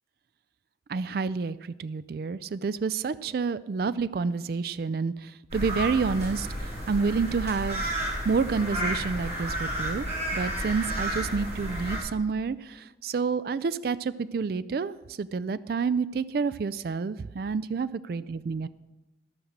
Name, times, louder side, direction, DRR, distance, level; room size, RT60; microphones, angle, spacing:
voice 1, 0.9-7.9 8.2-10.1 10.3-18.7, right 5 dB, 55° right, 16 dB, 0.3 m, -29 dB
sound 1, 5.5-12.0, right 1 dB, 40° right, 5.2 m, -32 dB
14.0 x 6.2 x 6.6 m, 1.0 s
head